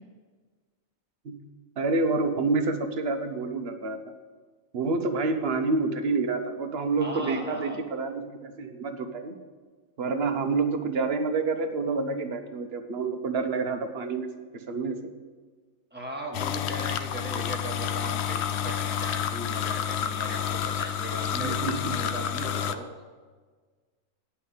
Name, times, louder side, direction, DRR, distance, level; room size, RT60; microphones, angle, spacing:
voice 1, 1.8-4.0 4.7-9.3 10.0-14.3 14.5-15.0 21.3-21.9, right 3 dB, 50° right, 7 dB, 1.1 m, -28 dB
voice 2, 7.0-7.8 15.9-22.9, right 1 dB, 10° right, 0 dB, 1.5 m, -38 dB
sound 1, 16.3-22.7, left 9 dB, 65° left, 0.8 m, -29 dB
9.7 x 5.8 x 8.5 m, 1.5 s
omnidirectional pair, 1.4 m